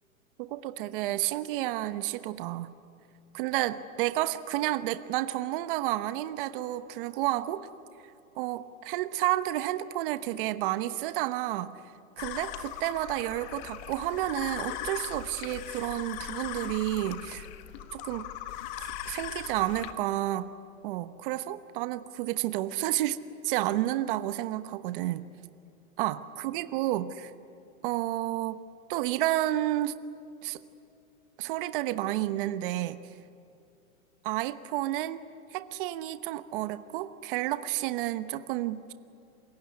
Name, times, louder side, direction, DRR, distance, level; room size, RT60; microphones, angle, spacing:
voice 1, 0.4-2.7 3.3-7.7 8.3-11.8 12.2-17.5 17.9-18.3 18.8-20.5 20.8-23.2 23.4-25.3 26.0-27.3 27.8-28.6 28.9-29.9 30.4-30.6 31.4-33.0 34.2-35.2 35.5-38.9, right 15 dB, 40° right, 11 dB, 1.0 m, -31 dB
sound 1, 12.2-19.9, left 11 dB, 35° left, 1.4 m, -39 dB
27.5 x 22.5 x 9.8 m, 2.6 s
hypercardioid pair, 150°, 43 cm